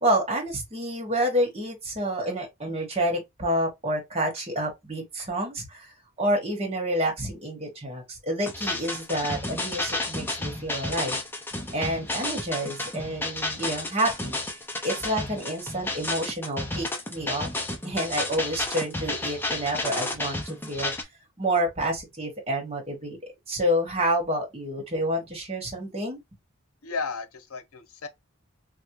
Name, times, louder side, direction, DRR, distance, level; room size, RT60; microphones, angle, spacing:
voice 1, 0.0-11.2 11.7-17.5 17.8-20.9 21.4-26.2, right 1 dB, 30° right, 1.2 m, -29 dB
sound 1, 8.5-21.0, left 2 dB, 10° left, 0.5 m, -32 dB
voice 2, 26.8-28.1, left 4 dB, 90° left, 0.7 m, -34 dB
3.4 x 2.2 x 2.9 m
head